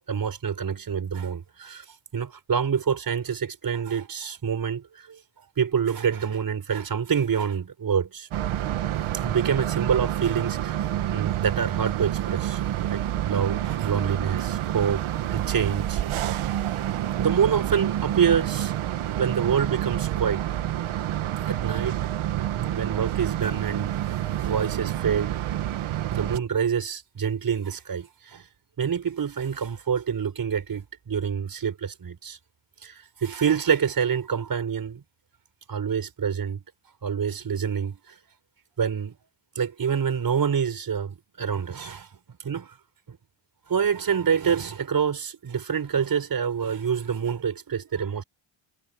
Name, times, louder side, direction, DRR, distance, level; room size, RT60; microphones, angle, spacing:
voice 1, 0.1-1.8 2.1-5.2 5.6-8.3 9.1-10.8 11.1-12.6 12.9-16.4 17.2-18.7 19.2-20.4 21.4-22.0 22.5-25.3 26.1-28.5 28.8-32.4 32.8-35.0 35.7-36.6 37.0-38.1 38.8-39.1 39.6-42.1 42.4-42.7 43.1-43.2 43.7-48.2, right 7 dB, 45° right, 5.5 m, -27 dB
sound 1, 8.3-26.4, right 12 dB, 75° right, 1.8 m, -28 dB
cardioid pair, 105°, 50 cm